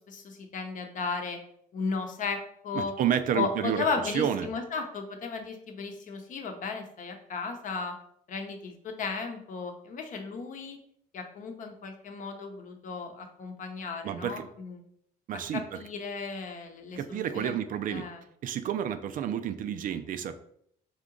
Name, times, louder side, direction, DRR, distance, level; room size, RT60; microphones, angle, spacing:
voice 1, 0.1-1.4 1.7-2.9 3.3-8.0 8.3-10.8 11.1-14.8 15.5-17.6 17.9-18.2, left 4 dB, 50° left, 4 dB, 0.8 m, -35 dB
voice 2, 2.7-3.8 4.1-4.5 14.0-14.5 15.3-15.6 16.9-18.1 18.4-20.4, right 9 dB, 55° right, 10 dB, 0.4 m, -30 dB
3.6 x 2.8 x 3.7 m, 0.68 s
cardioid pair, 110°, 17 cm